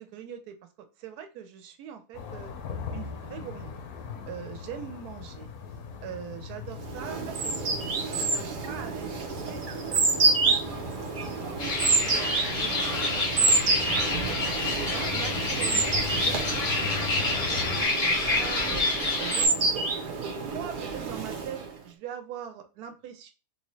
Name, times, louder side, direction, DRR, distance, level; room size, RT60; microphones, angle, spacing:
voice 1, 0.0-2.5 2.9-3.7 4.3-5.5 6.0-10.6 11.4-14.4 14.8-18.8 19.2-19.9 20.2-23.3, right 8 dB, 80° right, 7 dB, 1.1 m, -42 dB
sound 1, 2.1-17.8, left 6 dB, 75° left, 1.1 m, -39 dB
sound 2, 6.8-21.8, right 3 dB, 60° right, 0.5 m, -28 dB
sound 3, 11.6-19.5, left 2 dB, 30° left, 0.7 m, -28 dB
3.4 x 2.7 x 3.0 m, 0.33 s
omnidirectional pair, 1.6 m